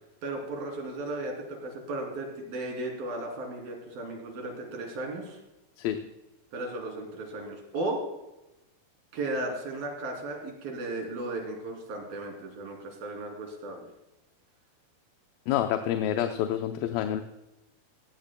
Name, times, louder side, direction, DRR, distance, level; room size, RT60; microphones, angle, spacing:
voice 1, 0.2-5.4 6.5-8.0 9.1-13.9, right 2 dB, 80° right, 1 dB, 4.9 m, -35 dB
voice 2, 15.5-17.2, left 11 dB, 85° left, 6 dB, 2.5 m, -28 dB
18.5 x 15.5 x 2.2 m, 0.96 s
omnidirectional pair, 4.1 m